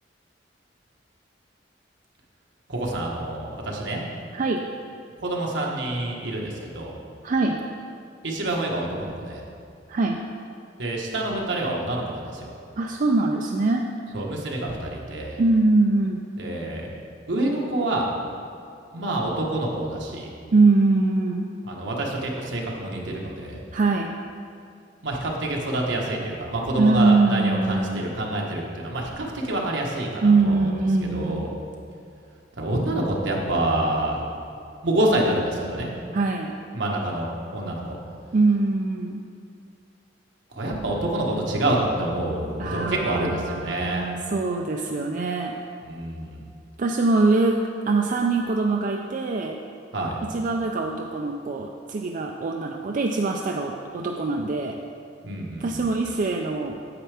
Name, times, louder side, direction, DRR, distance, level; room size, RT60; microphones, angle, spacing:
voice 1, 2.7-4.0 5.2-6.9 8.2-9.4 10.8-12.5 14.1-15.4 16.4-16.9 17.3-18.1 18.9-20.3 21.7-23.6 25.0-30.7 31.1-31.5 32.6-34.3 34.8-35.9 36.7-38.0 40.5-44.1 45.8-46.5 49.9-50.2 55.2-55.8, right 1 dB, 75° right, -2 dB, 1.3 m, -27 dB
voice 2, 4.3-4.6 7.2-7.6 9.9-10.2 12.8-13.8 15.4-16.3 20.5-21.5 23.7-24.1 26.8-28.0 30.2-31.4 36.1-36.5 38.3-39.2 42.6-45.6 46.8-47.6 47.9-49.6 50.3-54.8 55.6-56.8, right 3 dB, 45° right, 1 dB, 0.4 m, -22 dB
9.5 x 7.4 x 3.4 m, 2.4 s
head